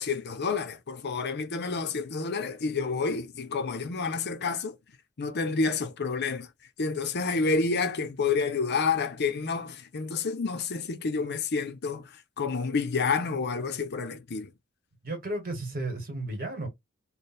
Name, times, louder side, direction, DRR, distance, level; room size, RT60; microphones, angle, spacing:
voice 1, 0.0-4.8 5.2-6.5 6.8-14.5, left 4 dB, 50° left, 0.6 m, -29 dB
voice 2, 15.0-16.7, right 2 dB, 45° right, 1.4 m, -33 dB
3.3 x 2.2 x 4.2 m
head